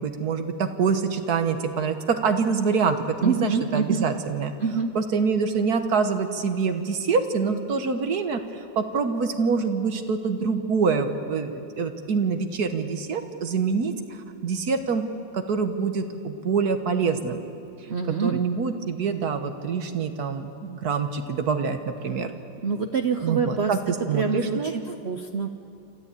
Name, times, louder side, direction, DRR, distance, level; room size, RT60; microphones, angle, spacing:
voice 1, 0.0-4.5 4.9-15.1 15.3-17.4 18.2-22.3 23.2-24.7, right 5 dB, 55° right, 7 dB, 1.6 m, -25 dB
voice 2, 3.2-4.1 4.6-4.9 17.9-18.4 22.6-23.7 24.1-25.5, right 5 dB, 75° right, 6 dB, 0.6 m, -26 dB
26.5 x 13.5 x 8.4 m, 2.6 s
omnidirectional pair, 2.1 m